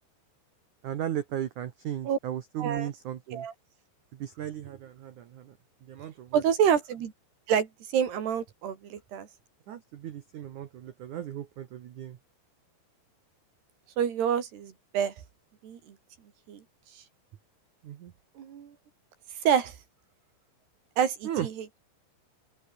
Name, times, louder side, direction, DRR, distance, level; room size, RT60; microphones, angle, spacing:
voice 1, 0.8-3.4 4.2-5.4 5.9-6.4 9.7-12.2 17.8-18.1 21.2-21.5, right 11 dB, 85° right, 1.7 m, -36 dB
voice 2, 2.6-2.9 3.3-3.5 6.3-7.1 7.5-9.3 14.0-15.1 15.6-15.8 16.5-16.6 18.4-18.7 19.4-19.7 21.0-21.7, right 8 dB, 60° right, 4.3 m, -27 dB
open air
omnidirectional pair, 5.6 m